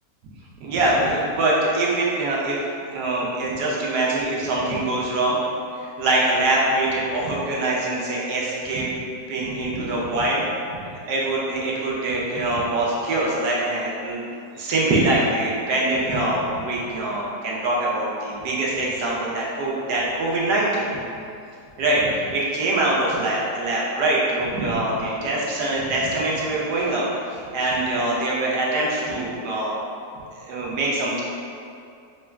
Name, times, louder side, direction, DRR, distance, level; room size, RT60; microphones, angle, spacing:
voice 1, 0.6-2.6 2.9-5.4 5.7-10.5 10.7-14.2 14.5-20.9 21.8-29.7 30.3-31.2, right 2 dB, 75° right, -5 dB, 1.2 m, -24 dB
6.0 x 2.3 x 2.2 m, 2.5 s
omnidirectional pair, 1.9 m